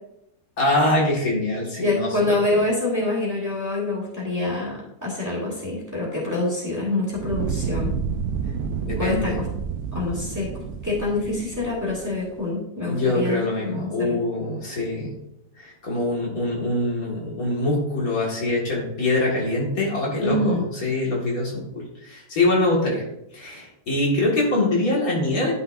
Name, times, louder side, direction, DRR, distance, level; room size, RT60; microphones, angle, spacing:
voice 1, 0.6-2.6 8.8-9.3 12.9-15.1 15.6-23.0 23.3-25.5, left 2 dB, 60° left, -3 dB, 2.3 m, -24 dB
voice 2, 1.8-7.9 9.0-9.5 9.9-14.2 20.2-20.6, left 2 dB, 10° right, -4 dB, 2.0 m, -26 dB
Fire, 7.1-12.3, right 6 dB, 80° right, 1.2 m, -30 dB
11.0 x 5.6 x 2.6 m, 0.82 s
omnidirectional pair, 1.7 m